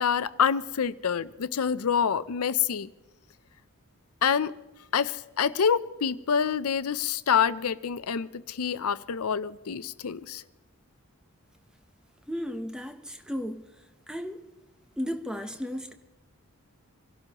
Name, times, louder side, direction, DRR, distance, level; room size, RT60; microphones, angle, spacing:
voice 1, 0.0-2.9 4.2-4.6 4.9-10.4, left 7 dB, 80° left, 0.5 m, -27 dB
voice 2, 12.3-13.6 14.1-14.4 15.0-15.9, equal, 5° right, 0.8 m, -34 dB
26.0 x 12.5 x 3.0 m
head